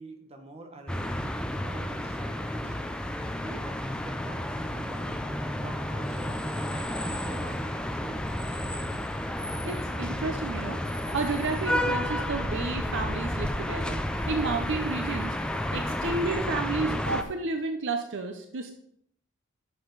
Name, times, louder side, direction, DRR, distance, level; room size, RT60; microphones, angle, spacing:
voice 1, 0.0-3.8 4.0-5.1 5.6-6.4 6.7-9.2, right 2 dB, 30° right, 4 dB, 1.2 m, -47 dB
sound 1, 0.9-17.2, left 1 dB, 5° left, 0.5 m, -31 dB
voice 2, 9.6-10.8 11.1-14.0 14.3-15.4 15.7-18.7, right 3 dB, 55° right, 5 dB, 0.7 m, -31 dB
9.8 x 6.5 x 4.0 m, 0.70 s
head